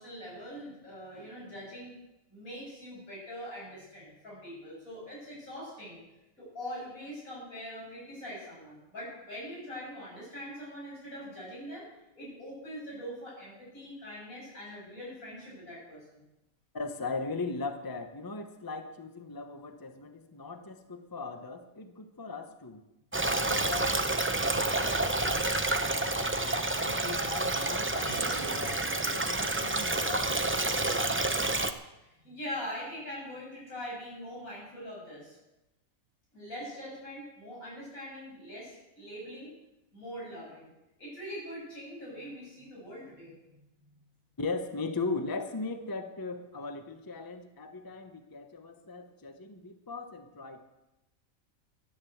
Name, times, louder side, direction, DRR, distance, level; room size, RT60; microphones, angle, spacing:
voice 1, 0.0-2.0 2.3-6.0 6.4-11.9 12.2-16.2 28.1-28.2 31.8-35.4 36.3-39.5 39.9-40.7 41.0-43.6, equal, 80° left, -5 dB, 7.5 m, -43 dB
voice 2, 16.7-22.8 23.4-25.5 25.8-31.2 44.4-50.6, left 3 dB, 20° left, 7 dB, 0.8 m, -39 dB
Stream, 23.1-31.7, right 2 dB, 20° right, 0.3 m, -29 dB
sound 1, 28.2-30.0, right 7 dB, 85° right, 1.4 m, -46 dB
12.0 x 11.0 x 7.8 m, 0.94 s
omnidirectional pair, 1.4 m